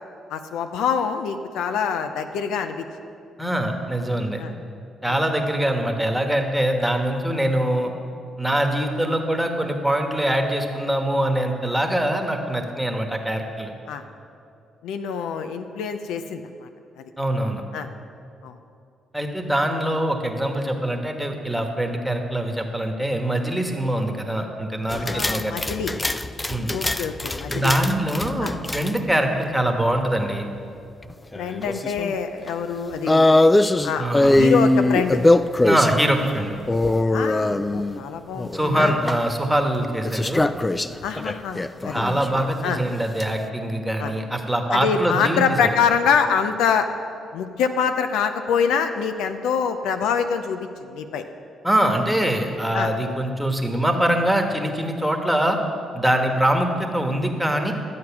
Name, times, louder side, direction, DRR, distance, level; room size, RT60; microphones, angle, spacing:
voice 1, 0.3-2.9 4.4-4.5 5.1-5.2 13.9-14.0 14.8-16.7 17.7-17.9 18.4-18.5 25.0-25.9 26.7-27.7 28.4-28.5 31.4-33.3 33.8-34.1 34.4-35.2 37.1-38.9 41.0-42.0 42.6-42.8 44.0-44.1 44.7-46.9 47.3-51.2 52.7-52.9, left 6 dB, 90° left, 8 dB, 0.6 m, -25 dB
voice 2, 3.4-4.4 5.0-7.9 8.4-13.7 17.2-17.6 19.1-25.5 26.5-26.7 27.5-30.5 34.0-34.6 35.6-36.5 38.5-40.5 41.9-45.7 51.6-55.6 55.9-57.7, right 1 dB, 5° right, 3 dB, 1.3 m, -23 dB
sound 1, 24.9-29.1 31.0-32.2 32.5-32.6 33.1-36.0 36.7-38.0 38.4-39.2 40.0-42.5 43.0-43.2, left 2 dB, 15° left, 0.3 m, -22 dB
12.0 x 7.8 x 5.9 m, 2.5 s
cardioid pair, 90°, 0 cm